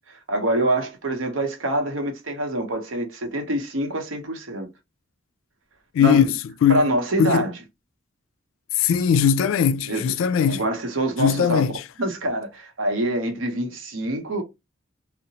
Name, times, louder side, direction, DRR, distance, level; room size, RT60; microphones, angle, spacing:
voice 1, 0.3-4.7 6.0-6.3 6.7-7.5 9.9-10.1 10.5-11.7 12.0-14.4, right 1 dB, 80° right, 0.8 m, -25 dB
voice 2, 8.8-10.6 11.2-11.8, left 7 dB, 85° left, 0.3 m, -19 dB
2.8 x 2.0 x 2.7 m
head